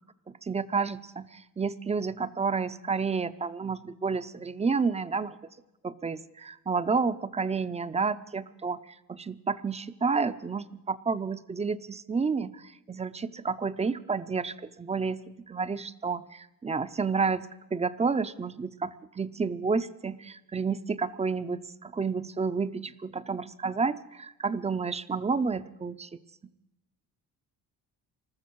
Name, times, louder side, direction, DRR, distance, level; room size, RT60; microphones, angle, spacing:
voice 1, 0.3-5.4 5.8-8.8 9.1-26.1, right 5 dB, 20° right, 13 dB, 0.5 m, -30 dB
21.0 x 13.5 x 4.6 m, 0.95 s
cardioid pair, 120°, 37 cm